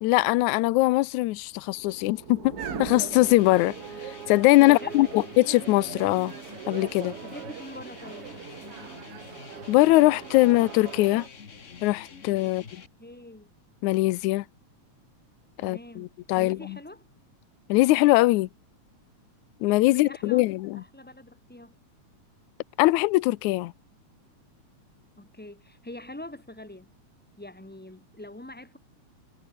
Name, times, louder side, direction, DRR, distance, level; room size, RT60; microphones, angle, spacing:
voice 1, 0.0-3.8 4.3-6.3 6.7-7.2 9.7-11.3 11.8-12.6 13.8-14.4 15.6-16.8 17.7-18.5 19.6-20.8 22.8-23.7, left 19 dB, 80° left, 2.1 m, -21 dB
sound 1, 1.6-4.3, right 5 dB, 35° right, 2.3 m, -40 dB
sound 2, 2.6-11.3, right 8 dB, 55° right, 2.5 m, -41 dB
sound 3, 3.1-12.9, left 6 dB, 35° left, 1.2 m, -47 dB
voice 2, 4.6-5.2 7.2-8.3 12.4-12.5 13.0-13.5 15.6-17.1 19.8-20.4 20.7-21.7 25.2-26.9 27.4-28.8, left 1 dB, 5° left, 1.5 m, -44 dB
omnidirectional pair, 3.4 m